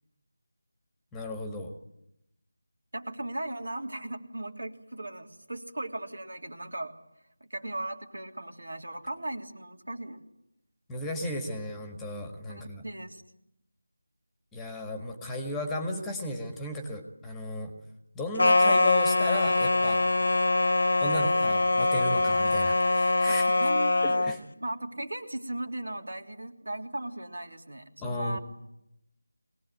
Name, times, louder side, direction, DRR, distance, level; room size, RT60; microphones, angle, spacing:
voice 1, 1.1-1.7 10.9-12.8 14.5-17.7 18.1-20.0 21.0-23.5 24.0-24.4 28.0-28.4, left 1 dB, 5° left, 5 dB, 1.7 m, -35 dB
voice 2, 2.9-6.9 7.4-10.2 12.5-13.2 23.2-24.3 24.6-28.4, right 1 dB, 65° right, 3 dB, 3.3 m, -37 dB
sound 1, 18.4-24.4, left 2 dB, 55° left, 0.9 m, -23 dB
23.5 x 18.5 x 9.4 m, 0.85 s
figure-of-eight pair, 165°, 0 cm